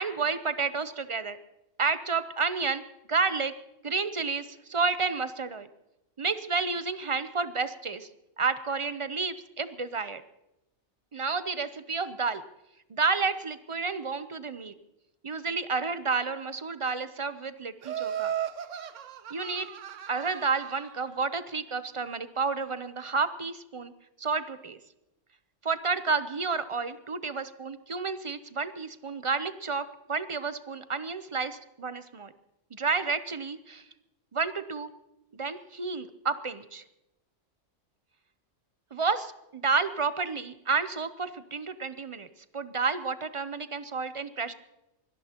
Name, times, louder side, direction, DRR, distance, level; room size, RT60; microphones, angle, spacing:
voice 1, 0.0-1.4 1.8-2.8 3.1-3.5 3.8-5.7 6.2-8.1 8.4-10.2 11.1-12.4 12.9-14.7 15.2-18.3 19.3-19.7 20.1-23.9 24.2-24.8 25.6-32.3 32.7-33.8 34.3-34.9 35.3-36.8 38.9-42.3 42.5-44.5, right 4 dB, 40° right, 12 dB, 0.5 m, -30 dB
Laughter, 17.8-21.0, right 10 dB, 80° right, 1.1 m, -36 dB
24.0 x 18.5 x 2.9 m, 0.92 s
omnidirectional pair, 1.3 m